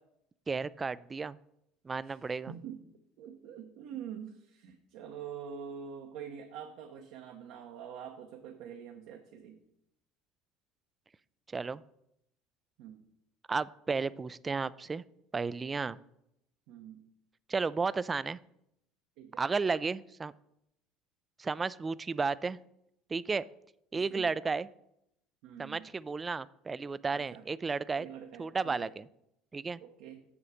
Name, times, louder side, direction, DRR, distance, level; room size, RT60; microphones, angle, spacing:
voice 1, 0.5-1.4 1.8-2.5 11.5-11.8 13.5-15.0 15.3-16.0 17.5-18.4 19.4-20.3 21.4-22.6 23.1-23.4 23.9-24.7 25.6-28.1 28.4-29.1 29.5-29.8, right 4 dB, 25° right, 18 dB, 0.3 m, -33 dB
voice 2, 2.5-2.8 3.2-9.6 12.8-13.0 16.7-17.0 19.2-19.4 23.9-24.3 25.4-25.9 27.1-27.4 28.0-28.9 29.8-30.2, right 8 dB, 70° right, 3 dB, 0.9 m, -45 dB
7.1 x 6.8 x 5.0 m, 0.79 s
supercardioid pair, 85°, 0 cm